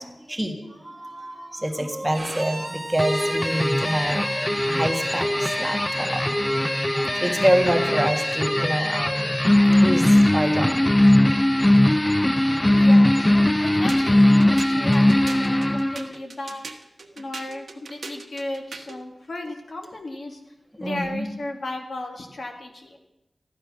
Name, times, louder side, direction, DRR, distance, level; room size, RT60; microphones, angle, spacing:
voice 1, 0.0-9.3 9.8-10.7 20.8-21.3, right 1 dB, 10° right, 3 dB, 1.7 m, -26 dB
Bowed string instrument, 2.1-8.8, right 2 dB, 30° right, 1.0 m, -40 dB
sound 1, 3.0-16.2, left 1 dB, 15° left, 0.4 m, -20 dB
voice 2, 12.7-16.7 17.2-20.4 20.8-23.0, left 2 dB, 65° left, 2 dB, 2.1 m, -34 dB
sound 2, 13.9-19.0, right 4 dB, 70° right, 1.3 m, -40 dB
14.0 x 10.0 x 6.3 m, 0.90 s
wide cardioid pair, 105°, 0 cm